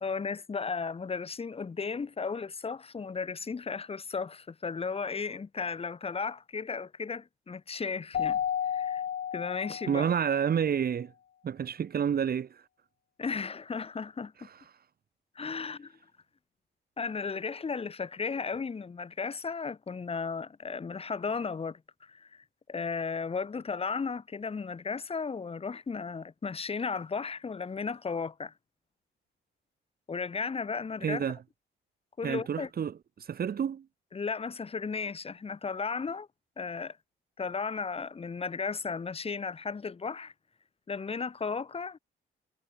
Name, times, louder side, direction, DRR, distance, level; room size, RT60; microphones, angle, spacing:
voice 1, 0.0-9.0 9.3-10.0 13.2-14.5 15.3-16.0 17.0-28.5 30.1-31.2 32.2-32.7 34.1-36.3 36.6-37.0 37.4-40.3 40.9-42.0, left 5 dB, 30° left, 1.5 m, -35 dB
Keyboard (musical), 8.1-10.4, left 9 dB, 55° left, 2.9 m, -32 dB
voice 2, 9.9-11.1 11.4-12.6 31.0-31.4 32.2-33.9, right 8 dB, 50° right, 2.0 m, -29 dB
cardioid pair, 90°, 20 cm